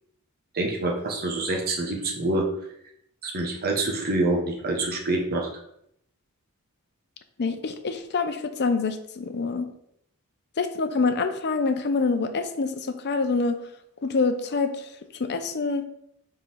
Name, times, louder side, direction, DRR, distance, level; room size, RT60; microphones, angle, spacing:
voice 1, 0.5-2.5 3.2-5.5, right 2 dB, 45° right, 0 dB, 1.0 m, -26 dB
voice 2, 7.4-9.7 10.6-13.6 14.0-14.9 15.2-15.8, left 4 dB, 50° left, 8 dB, 0.6 m, -26 dB
4.7 x 3.8 x 5.5 m, 0.74 s
head